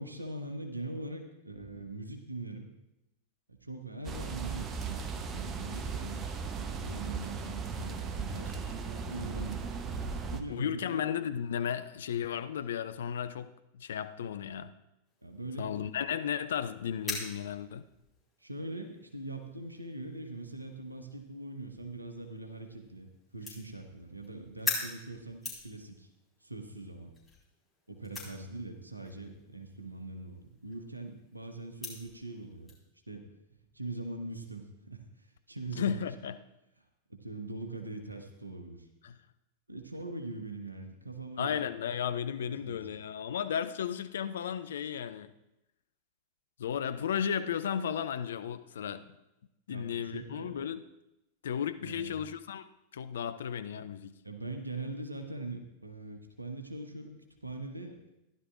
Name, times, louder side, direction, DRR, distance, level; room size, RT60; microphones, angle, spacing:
voice 1, 0.0-2.7 3.6-6.2 6.6-9.8 10.3-11.0 15.2-15.8 18.4-26.1 26.4-27.1 27.9-32.7 33.1-33.2 33.7-36.0 37.1-38.9 39.7-41.6 41.9-42.0 42.5-43.0 49.7-50.6 51.8-52.2 54.2-58.0, right 2 dB, 85° right, 5 dB, 1.0 m, -42 dB
sound 1, 4.0-10.4, right 5 dB, 25° right, 0.8 m, -37 dB
voice 2, 10.5-13.5 13.7-14.7 15.6-17.8 35.7-36.4 39.0-39.2 41.4-45.3 46.6-49.1 49.7-50.8 51.4-52.6 52.9-54.2, left 8 dB, 65° left, 11 dB, 0.4 m, -34 dB
sound 2, 15.0-32.8, left 3 dB, 10° left, 4.4 m, -45 dB
15.5 x 11.0 x 2.4 m, 0.90 s
figure-of-eight pair, 90°, 0 cm